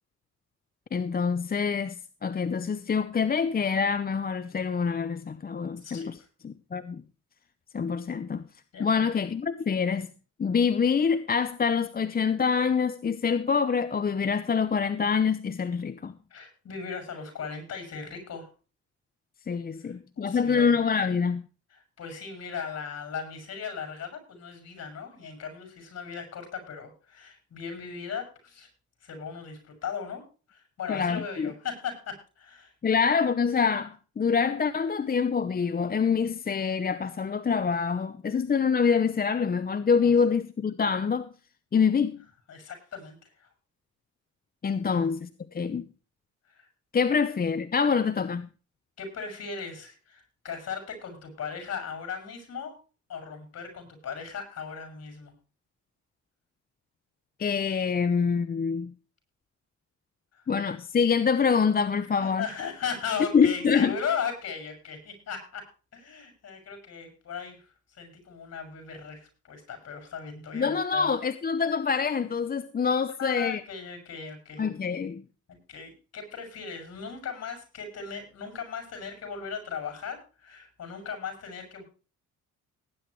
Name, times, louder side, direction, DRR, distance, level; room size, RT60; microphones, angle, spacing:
voice 1, 0.9-6.2 6.4-7.0 7.7-8.4 8.8-10.1 10.4-16.1 19.5-21.4 30.9-31.5 32.8-41.3 41.7-42.2 44.6-45.9 46.9-48.5 57.4-58.9 60.5-62.4 63.3-63.9 70.5-73.6 74.6-75.2, left 6 dB, 30° left, 0.8 m, -25 dB
voice 2, 8.7-9.0 16.3-18.5 19.8-20.8 21.7-28.7 29.0-30.2 30.5-32.7 40.0-40.1 42.5-43.5 44.8-45.1 46.5-46.7 49.0-52.7 53.1-55.3 60.3-60.4 62.0-65.6 65.9-71.1 73.2-74.6 75.5-81.8, left 6 dB, 55° left, 7.0 m, -37 dB
18.5 x 10.0 x 3.2 m
cardioid pair, 90°, 30 cm